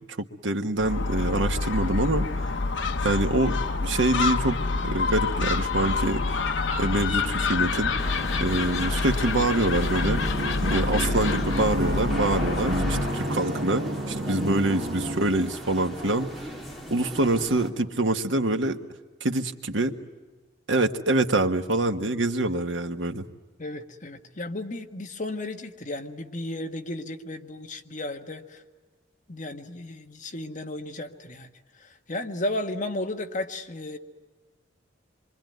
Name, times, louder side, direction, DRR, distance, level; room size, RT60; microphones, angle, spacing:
voice 1, 0.2-2.5 3.0-4.6 4.8-6.4 6.8-7.9 8.4-10.2 10.7-16.5 16.9-18.8 19.2-19.9 20.7-23.2, right 2 dB, 85° right, 6 dB, 1.4 m, -25 dB
Gull seagull, 0.8-13.2, left 3 dB, 75° left, 1.1 m, -27 dB
sound 1, 8.0-17.7, equal, ahead, 2.9 m, -38 dB
sound 2, 9.9-15.3, right 1 dB, 55° right, 1.4 m, -30 dB
voice 2, 23.6-28.6 29.3-31.5 31.8-34.0, left 1 dB, 40° left, 4 dB, 1.4 m, -34 dB
27.0 x 24.0 x 9.3 m, 1.3 s
head